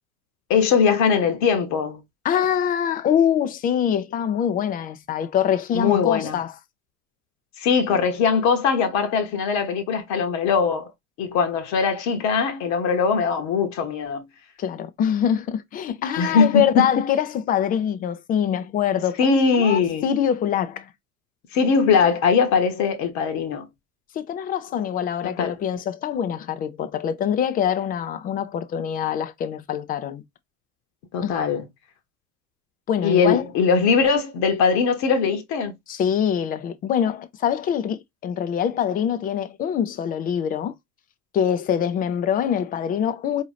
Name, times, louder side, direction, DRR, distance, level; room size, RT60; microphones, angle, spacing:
voice 1, 0.5-2.0 5.7-6.4 7.6-10.9 11.2-14.2 16.2-16.9 19.2-20.1 21.5-23.7 25.4-25.5 31.1-31.6 33.0-35.7, left 5 dB, 40° left, 1.0 m, -21 dB
voice 2, 2.2-6.5 14.6-20.9 24.1-30.2 31.2-31.4 32.9-33.4 35.9-40.7 41.3-43.4, left 9 dB, 20° left, 0.4 m, -24 dB
4.5 x 2.7 x 3.2 m
figure-of-eight pair, 75°, 43 cm